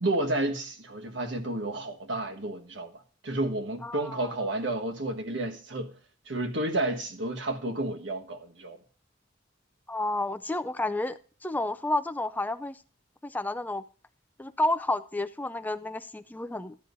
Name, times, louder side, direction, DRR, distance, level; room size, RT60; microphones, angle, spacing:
voice 1, 0.0-5.9 6.3-8.8, right 2 dB, 65° right, 1.4 m, -31 dB
voice 2, 3.8-4.3 9.9-12.8 13.2-13.8 14.4-16.8, left 2 dB, 10° left, 0.4 m, -31 dB
14.5 x 10.0 x 2.6 m
head